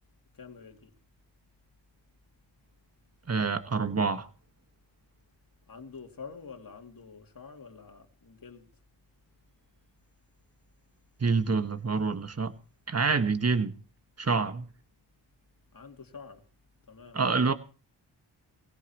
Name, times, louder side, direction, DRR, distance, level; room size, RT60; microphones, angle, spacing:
voice 1, 0.3-0.9 5.7-8.7 15.7-16.4 16.9-17.2, left 5 dB, 45° left, 2.7 m, -47 dB
voice 2, 3.3-4.3 11.2-12.5 12.9-13.7 14.2-14.7 17.1-17.5, right 4 dB, 30° right, 1.5 m, -27 dB
20.0 x 17.0 x 3.0 m
cardioid pair, 60°, 47 cm